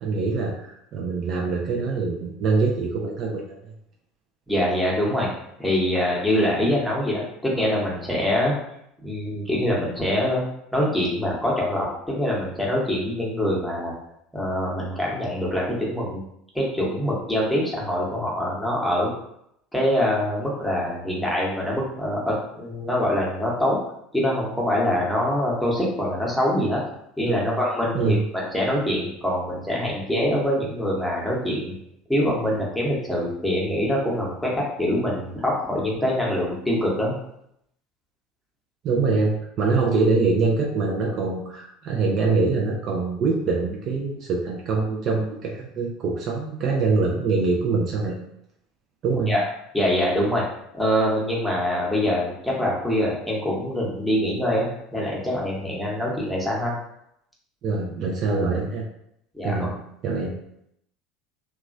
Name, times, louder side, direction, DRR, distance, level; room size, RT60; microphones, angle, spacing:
voice 1, 0.0-3.5 27.3-27.5 27.9-28.2 38.8-48.2 49.0-49.3 57.6-58.8 59.4-59.7 60.0-60.3, right 4 dB, 45° right, -1 dB, 0.5 m, -24 dB
voice 2, 4.5-5.3 5.6-8.5 9.0-10.4 10.7-13.9 14.3-16.2 16.5-19.1 19.7-23.8 24.1-26.8 27.2-31.7 32.1-37.1 49.3-49.4 49.7-50.4 50.7-56.7 59.3-59.5, left 1 dB, ahead, -4 dB, 1.0 m, -24 dB
2.8 x 2.3 x 2.6 m, 0.75 s
figure-of-eight pair, 70°, 0 cm